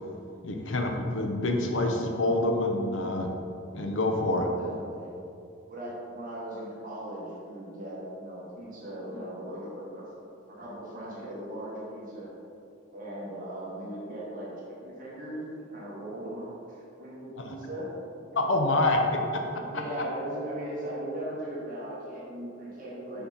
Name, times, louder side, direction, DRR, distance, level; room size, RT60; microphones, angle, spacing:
voice 1, 0.4-3.3 3.7-4.5 17.4-17.5 18.4-19.8, left 2 dB, 70° left, 3 dB, 0.8 m, -27 dB
voice 2, 4.3-5.1 5.7-10.0 10.5-12.3 12.9-17.9 18.3-18.4 19.7-23.2, right 1 dB, 45° right, -6 dB, 1.5 m, -38 dB
5.8 x 5.5 x 4.1 m, 2.6 s
head